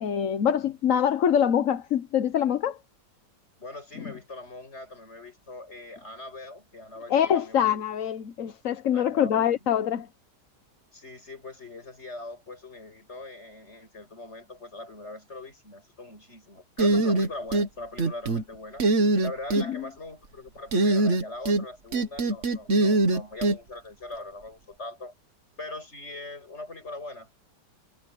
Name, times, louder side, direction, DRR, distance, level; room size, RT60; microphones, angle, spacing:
voice 1, 0.0-2.8 4.0-4.1 7.1-10.1 19.7-19.8, left 9 dB, 55° left, 1.2 m, -24 dB
voice 2, 3.6-7.8 8.9-9.6 10.9-25.1 25.6-27.3, left 2 dB, 40° left, 7.2 m, -41 dB
sound 1, 16.8-17.7 18.0-18.4 18.8-19.7 20.7-21.6 21.9-23.6, right 2 dB, 45° right, 1.7 m, -22 dB
omnidirectional pair, 1.8 m